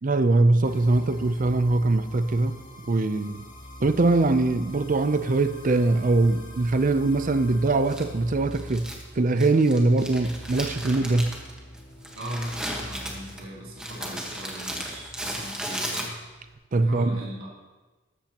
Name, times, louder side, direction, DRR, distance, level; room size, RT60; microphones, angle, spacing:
voice 1, 0.0-2.6 2.9-3.4 3.8-8.9 9.2-11.3 16.7-17.2, right 2 dB, 40° right, 11 dB, 0.5 m, -22 dB
sound 1, 0.6-15.8, equal, 40° left, 1.9 m, -45 dB
Crumpling crinkling, 7.9-16.5, equal, 5° right, 1.3 m, -36 dB
voice 2, 12.1-16.1 16.8-17.5, right 1 dB, 80° right, -5 dB, 3.1 m, -38 dB
13.5 x 13.0 x 2.9 m, 1.2 s
head